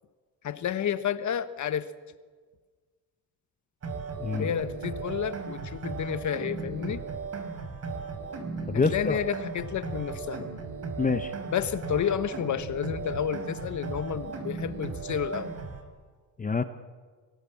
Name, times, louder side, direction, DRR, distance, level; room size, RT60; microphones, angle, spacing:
voice 1, 0.4-1.9 4.4-7.0 8.7-10.5 11.5-15.5, left 9 dB, 45° left, 12 dB, 1.4 m, -31 dB
sound 1, 3.8-15.8, right 4 dB, 35° right, 4.8 m, -36 dB
voice 2, 8.7-9.2 11.0-11.3 16.4-16.6, left 4 dB, 20° left, 10 dB, 1.0 m, -26 dB
24.0 x 18.0 x 7.3 m, 1.5 s
supercardioid pair, 90°, 42 cm